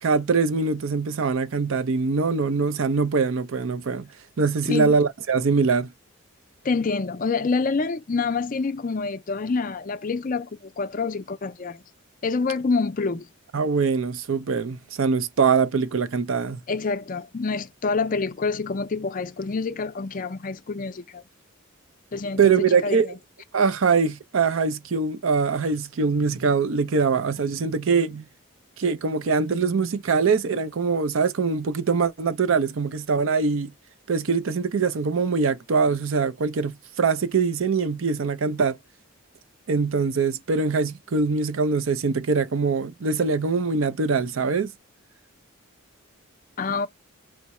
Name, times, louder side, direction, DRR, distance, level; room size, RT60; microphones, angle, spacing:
voice 1, 0.0-4.1 4.4-5.9 13.5-16.6 22.4-23.1 23.5-28.2 28.8-33.7 34.1-38.8 39.7-44.7, right 4 dB, 65° right, 0.5 m, -23 dB
voice 2, 6.6-11.8 12.2-13.3 16.7-21.2 22.1-23.0 46.6-46.9, left 4 dB, 40° left, 0.4 m, -27 dB
4.6 x 2.1 x 4.2 m
head